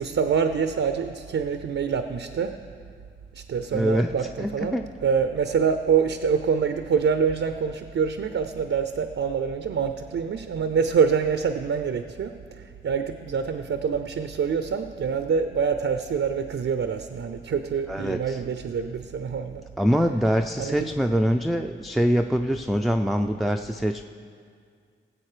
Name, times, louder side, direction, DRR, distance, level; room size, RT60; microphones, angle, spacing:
voice 1, 0.0-2.6 3.3-19.6 20.6-20.9, right 6 dB, 80° right, 8 dB, 0.5 m, -26 dB
voice 2, 3.7-4.1 4.4-4.9 17.9-18.4 19.8-24.0, equal, ahead, 4 dB, 0.4 m, -24 dB
18.5 x 8.0 x 5.0 m, 2.1 s
wide cardioid pair, 90°, 21 cm